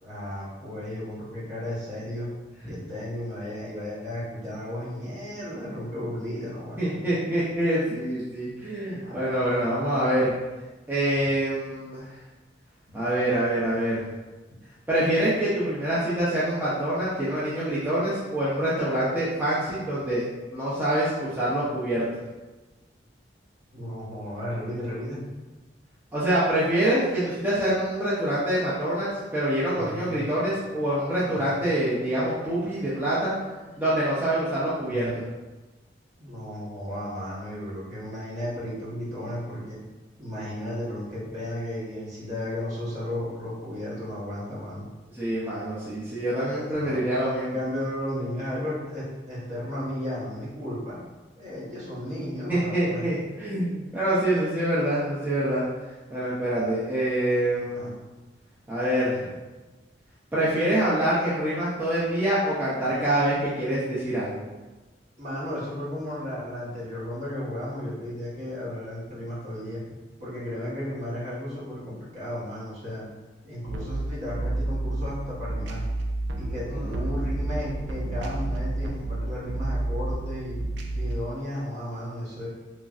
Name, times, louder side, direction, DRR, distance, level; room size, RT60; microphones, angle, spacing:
voice 1, 0.0-2.3 2.7-7.0 9.0-9.2 9.5-9.7 23.7-25.2 29.7-30.3 31.3-31.7 33.2-33.8 34.8-35.2 36.2-39.8 40.2-44.9 46.7-47.0 47.4-51.0 51.3-53.1 57.7-57.9 65.2-73.1 73.4-75.8 76.4-80.6 80.9-82.5, left 1 dB, 40° right, -8 dB, 1.0 m, -34 dB
voice 2, 6.8-10.3 10.9-12.1 12.9-14.0 14.9-20.3 20.5-22.0 26.1-33.3 33.8-35.1 45.1-47.5 52.5-55.6 56.1-58.0 58.7-59.4 60.3-64.4 76.7-76.9, right 1 dB, 10° right, -11 dB, 0.5 m, -25 dB
sound 1, 73.7-81.2, right 1 dB, 75° right, 0.3 m, -30 dB
3.1 x 2.6 x 2.4 m, 1.2 s
head